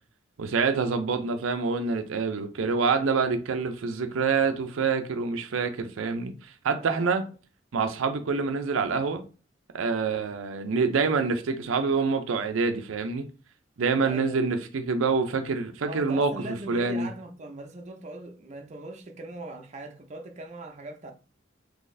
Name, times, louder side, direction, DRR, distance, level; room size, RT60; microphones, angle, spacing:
voice 1, 0.4-7.2 7.7-9.2 9.7-13.3 13.8-17.1, right 4 dB, 85° right, 0.5 m, -26 dB
voice 2, 6.8-7.2 14.0-14.4 15.9-21.1, right 2 dB, 35° right, 0.5 m, -40 dB
3.9 x 2.8 x 2.6 m
head